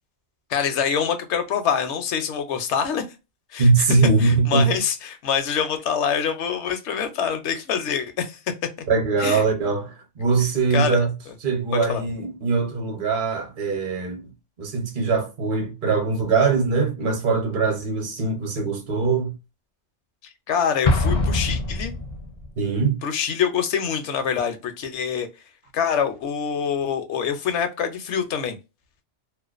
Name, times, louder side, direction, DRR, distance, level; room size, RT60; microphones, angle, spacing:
voice 1, 0.5-3.0 3.5-3.9 4.2-8.4 9.2-9.4 10.7-11.0 11.7-12.0 20.5-21.9 23.0-25.3 25.7-28.6, left 7 dB, 80° left, 0.9 m, -25 dB
voice 2, 3.6-4.7 8.9-11.1 11.4-14.3 14.6-19.3 22.6-23.0, right 4 dB, 50° right, 0.9 m, -22 dB
Explosion, 20.9-22.5, left 2 dB, 50° left, 0.5 m, -23 dB
2.4 x 2.1 x 2.3 m
omnidirectional pair, 1.2 m